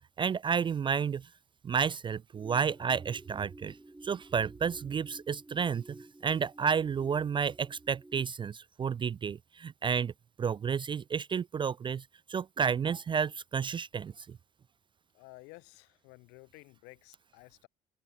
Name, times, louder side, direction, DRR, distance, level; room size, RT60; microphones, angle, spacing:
voice 1, 0.2-1.3 1.6-3.8 4.0-10.1 10.4-14.4, right 6 dB, 25° right, 0.4 m, -31 dB
sound 1, 2.4-8.2, right 2 dB, 10° right, 1.9 m, -53 dB
voice 2, 15.1-17.7, left 27 dB, 70° left, 6.7 m, -53 dB
hypercardioid pair, 55°, 18 cm